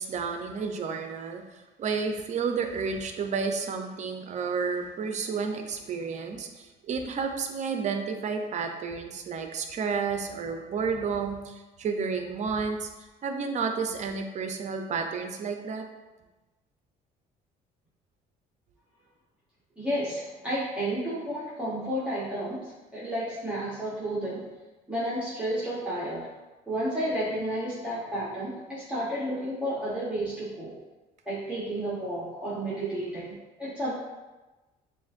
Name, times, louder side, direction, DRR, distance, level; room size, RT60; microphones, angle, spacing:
voice 1, 0.0-12.9 13.2-15.8, right 5 dB, 45° right, 5 dB, 0.6 m, -31 dB
voice 2, 19.8-24.5 24.9-26.3 26.7-30.7 31.2-33.9, right 1 dB, 5° right, -10 dB, 1.1 m, -31 dB
7.1 x 2.6 x 2.5 m, 1.1 s
cardioid pair, 110°, 17 cm